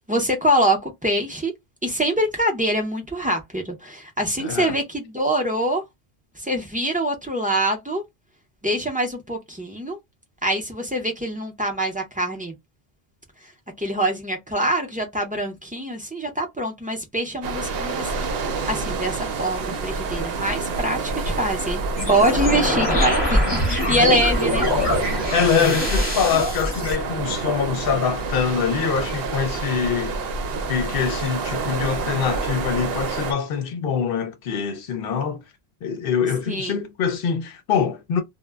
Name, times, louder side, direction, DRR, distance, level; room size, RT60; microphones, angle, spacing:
voice 1, 0.1-1.5 1.8-5.8 6.4-8.0 8.6-10.0 10.4-12.5 13.8-18.1 18.7-21.8 22.1-23.4 23.7-24.7 36.5-36.8, right 1 dB, 10° right, 0.5 m, -24 dB
voice 2, 4.4-4.8 25.3-30.2 30.7-35.4 35.8-38.2, left 7 dB, 65° left, 0.7 m, -24 dB
sound 1, 17.4-33.3, right 4 dB, 70° right, 0.8 m, -28 dB
sound 2, 22.0-27.0, left 1 dB, 30° left, 0.7 m, -23 dB
2.1 x 2.0 x 3.4 m
omnidirectional pair, 1.0 m